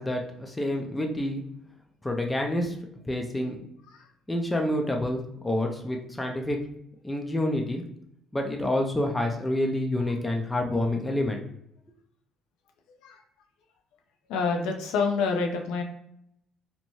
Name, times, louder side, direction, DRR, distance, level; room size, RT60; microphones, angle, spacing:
voice 1, 0.0-1.4 2.0-2.8 3.1-3.6 4.3-6.6 7.0-7.8 8.3-11.4, left 1 dB, 10° left, 1 dB, 0.4 m, -28 dB
voice 2, 14.3-15.8, left 4 dB, 85° left, 3 dB, 0.5 m, -27 dB
2.7 x 2.1 x 3.0 m, 0.74 s
cardioid pair, 95°, 0 cm